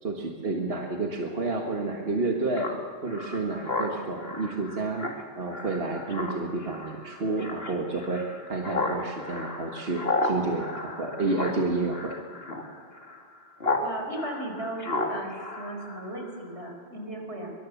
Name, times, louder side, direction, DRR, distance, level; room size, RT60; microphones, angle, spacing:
voice 1, 0.0-2.7 3.0-5.0 5.4-12.1, right 3 dB, 60° right, 1 dB, 1.8 m, -30 dB
Speech synthesizer, 2.6-13.9 14.2-16.4, left 2 dB, 60° left, 2.7 m, -33 dB
voice 2, 13.8-15.3 15.6-17.5, right 1 dB, 80° right, 2 dB, 5.2 m, -36 dB
23.5 x 22.0 x 7.2 m, 2.2 s
omnidirectional pair, 1.1 m